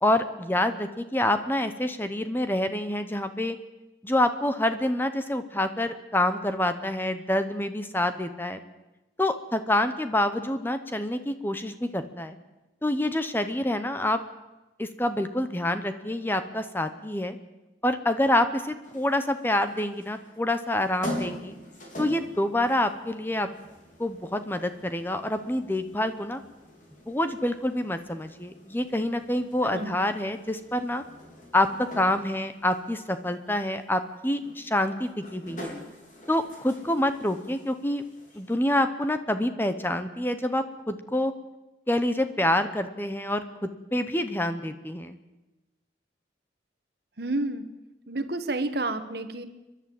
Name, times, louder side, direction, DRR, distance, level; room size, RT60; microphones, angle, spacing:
voice 1, 0.0-3.6 4.0-8.6 9.2-12.4 12.8-14.2 14.8-17.4 17.8-21.5 22.0-23.5 24.0-26.4 27.1-31.0 31.5-35.8 36.3-38.0 38.4-41.3 41.9-45.1, left 1 dB, 10° left, 9 dB, 0.8 m, -27 dB
sound 1, 18.8-38.6, left 1 dB, 45° left, 4.3 m, -44 dB
voice 2, 47.2-47.6 48.1-49.5, right 2 dB, 60° right, 9 dB, 1.4 m, -30 dB
30.0 x 11.0 x 7.8 m, 1.0 s
head